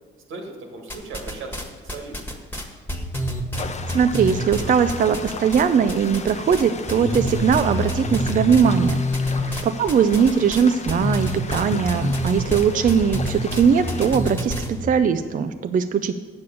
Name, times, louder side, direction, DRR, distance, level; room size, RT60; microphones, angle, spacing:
voice 1, 0.3-2.2 9.3-9.8, right 3 dB, 90° right, 2 dB, 1.7 m, -38 dB
sound 1, 0.9-1.6 1.9-5.6 5.9-6.6 6.9-14.7, equal, 10° left, 1.5 m, -26 dB
sound 2, 3.5-14.2, left 4 dB, 35° left, 0.7 m, -36 dB
voice 2, 3.9-9.0 9.4-16.2, right 7 dB, 40° right, 9 dB, 0.4 m, -20 dB
8.0 x 6.9 x 6.8 m, 1.5 s
cardioid pair, 90°, 20 cm